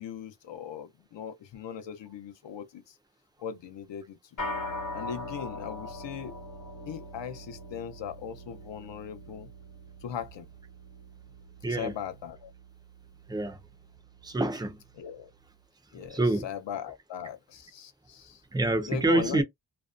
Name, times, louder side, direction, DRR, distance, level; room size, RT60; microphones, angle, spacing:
voice 1, 0.0-3.0 3.4-4.2 4.9-6.4 6.9-9.5 10.0-10.5 11.7-12.5 15.0-15.3 15.9-18.4 18.9-19.4, left 8 dB, 70° left, 0.6 m, -39 dB
sound 1, 4.4-13.9, left 1 dB, 45° left, 1.0 m, -42 dB
voice 2, 14.2-14.8 16.1-16.5 18.5-19.4, right 2 dB, 10° right, 0.3 m, -26 dB
2.5 x 2.1 x 2.4 m
wide cardioid pair, 130°, 45 cm